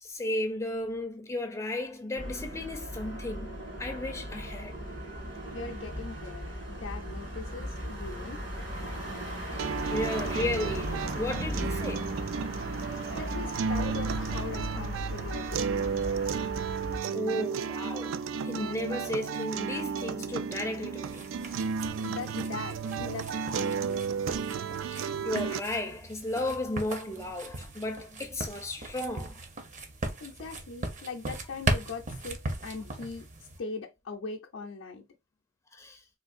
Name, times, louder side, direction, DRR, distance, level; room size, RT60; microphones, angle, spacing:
voice 1, 0.0-4.8 9.5-12.1 17.1-21.3 23.5-23.6 24.8-29.4 35.7-36.0, left 1 dB, 15° left, 0.4 m, -34 dB
sound 1, 2.1-17.0, equal, 65° right, 1.9 m, -37 dB
voice 2, 5.5-8.4 13.1-16.0 22.0-24.0 30.2-35.0, left 4 dB, 75° left, 0.5 m, -41 dB
sound 2, 9.6-25.6, right 6 dB, 85° right, 0.3 m, -33 dB
sound 3, 21.0-33.6, right 2 dB, 40° right, 0.6 m, -38 dB
3.8 x 2.5 x 2.4 m
head